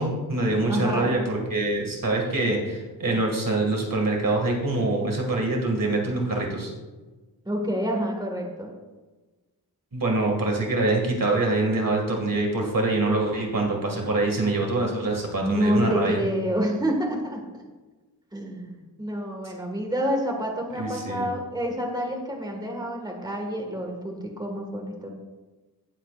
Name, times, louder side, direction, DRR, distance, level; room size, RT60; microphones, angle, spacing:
voice 1, 0.0-6.7 9.9-16.2 20.8-21.3, right 2 dB, 55° right, 0 dB, 2.1 m, -25 dB
voice 2, 0.7-1.1 7.5-8.7 15.3-17.4 18.3-25.1, equal, 10° right, 1 dB, 1.7 m, -28 dB
17.5 x 7.4 x 2.5 m, 1.2 s
wide cardioid pair, 105°, 40 cm